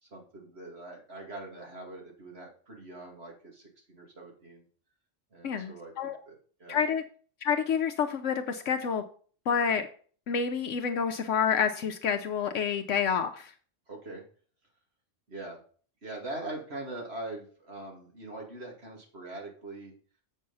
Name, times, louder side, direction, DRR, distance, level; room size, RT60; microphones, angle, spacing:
voice 1, 0.0-4.6 5.3-6.8 13.9-14.2 15.3-15.6 16.0-19.9, right 2 dB, 55° right, -1 dB, 2.8 m, -42 dB
voice 2, 5.4-6.2 6.7-7.0 7.4-9.0 9.5-9.9 10.3-13.5, left 7 dB, 75° left, 6 dB, 1.0 m, -28 dB
7.7 x 5.5 x 5.4 m, 0.43 s
omnidirectional pair, 1.3 m